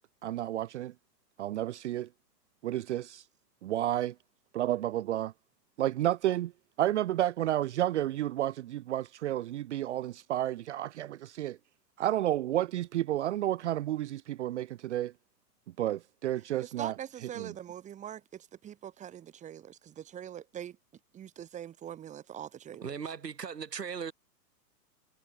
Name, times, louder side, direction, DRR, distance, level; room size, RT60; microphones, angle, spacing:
voice 1, 0.2-0.9 1.4-2.1 2.6-3.2 3.6-4.1 4.5-5.3 5.8-6.5 6.8-11.6 12.0-15.1 15.8-16.9 17.4-17.5, right 13 dB, 45° right, 0.7 m, -31 dB
voice 2, 16.6-20.8 21.1-22.8, right 10 dB, 15° right, 1.3 m, -43 dB
voice 3, 22.8-24.1, right 6 dB, 70° right, 5.2 m, -38 dB
figure-of-eight pair, 110°, 50 cm